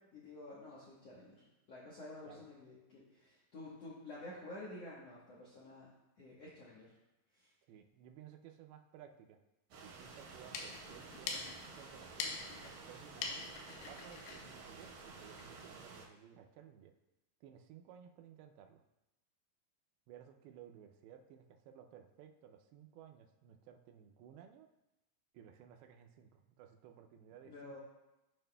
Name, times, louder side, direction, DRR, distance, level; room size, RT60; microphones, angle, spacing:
voice 1, 0.0-1.4 1.7-5.9 6.2-6.9 7.3-7.5 27.4-27.8, left 2 dB, 70° left, -7 dB, 1.5 m, -50 dB
voice 2, 7.7-9.4 9.8-11.5 11.8-13.5 13.8-16.9 17.4-18.8 20.1-24.7 25.3-27.8, right 9 dB, 85° right, 5 dB, 2.5 m, -57 dB
sound 1, 9.7-16.1, right 4 dB, 70° right, 1.8 m, -52 dB
sound 2, 10.3-15.6, left 5 dB, 90° left, 2.8 m, -45 dB
11.0 x 5.6 x 2.2 m, 0.95 s
omnidirectional pair, 4.5 m